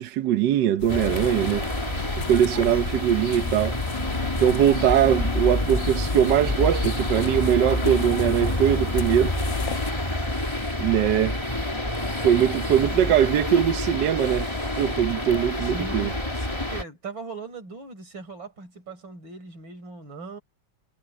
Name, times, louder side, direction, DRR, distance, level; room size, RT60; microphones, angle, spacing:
voice 1, 0.0-1.7 2.3-3.8 4.4-9.3 10.8-11.4 12.2-14.5 14.8-16.1, right 10 dB, 70° right, 1.4 m, -21 dB
sound 1, 0.8-9.9, left 9 dB, 70° left, 1.5 m, -36 dB
sound 2, 0.9-16.8, left 1 dB, 15° left, 2.6 m, -28 dB
voice 2, 15.6-20.4, right 3 dB, 85° right, 5.6 m, -39 dB
omnidirectional pair, 2.0 m